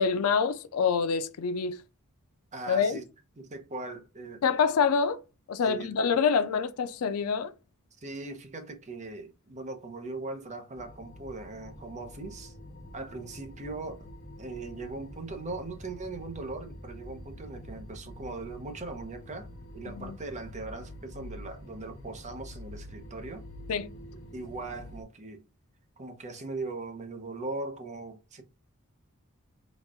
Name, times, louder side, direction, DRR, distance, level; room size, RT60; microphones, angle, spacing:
voice 1, 0.0-1.8 2.7-3.0 4.4-5.2 5.5-7.5 20.0-20.2 23.7-23.9, left 6 dB, 85° left, 0.4 m, -26 dB
voice 2, 2.5-3.0 3.4-4.4 5.6-5.9 8.0-12.5 12.9-14.1 14.4-23.4 24.3-25.4 26.0-28.4, right 3 dB, 35° right, 0.8 m, -39 dB
sound 1, 10.7-25.0, equal, 65° left, 1.1 m, -46 dB
4.1 x 2.3 x 3.5 m
head